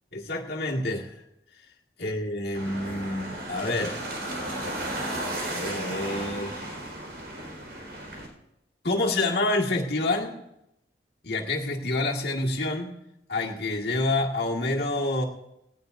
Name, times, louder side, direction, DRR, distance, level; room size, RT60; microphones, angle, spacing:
voice 1, 0.1-1.1 2.0-4.0 5.5-6.6 8.8-10.4 11.2-13.0 13.3-15.2, left 2 dB, 65° left, -1 dB, 1.9 m, -27 dB
sound 1, 2.5-8.3, right 1 dB, 80° right, 4.4 m, -34 dB
18.5 x 17.0 x 2.6 m, 0.85 s
head